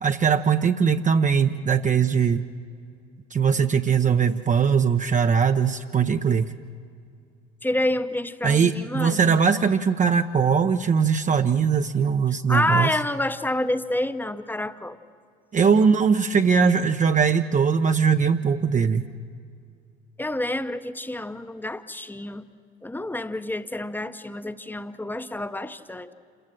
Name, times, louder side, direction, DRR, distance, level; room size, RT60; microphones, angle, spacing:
voice 1, 0.0-2.4 3.3-6.5 8.4-12.9 15.5-19.1, right 6 dB, 25° right, 7 dB, 0.7 m, -20 dB
voice 2, 7.6-9.4 12.5-15.0 20.2-22.4 22.8-26.1, left 1 dB, 5° left, 11 dB, 0.8 m, -28 dB
28.0 x 14.5 x 7.7 m, 2.3 s
figure-of-eight pair, 55°, 30 cm